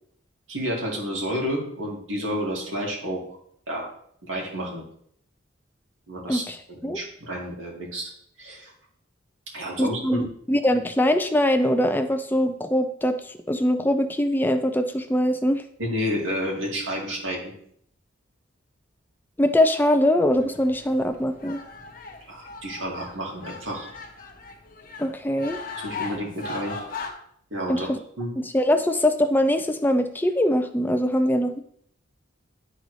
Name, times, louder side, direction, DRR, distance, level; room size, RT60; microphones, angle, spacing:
voice 1, 0.5-3.2 3.7-3.9 4.2-4.8 6.1-8.1 8.4-8.7 9.5-10.3 15.8-17.5 22.3-23.9 25.8-26.8 27.5-27.9 28.2-28.3, equal, 85° right, -3 dB, 2.2 m, -30 dB
voice 2, 9.8-15.6 19.4-21.6 25.0-25.6 27.7-28.0 28.4-31.6, left 1 dB, 10° left, 8 dB, 0.4 m, -22 dB
sound 1, 20.3-27.1, left 4 dB, 45° left, 0.9 m, -38 dB
10.5 x 4.0 x 3.1 m, 0.67 s
head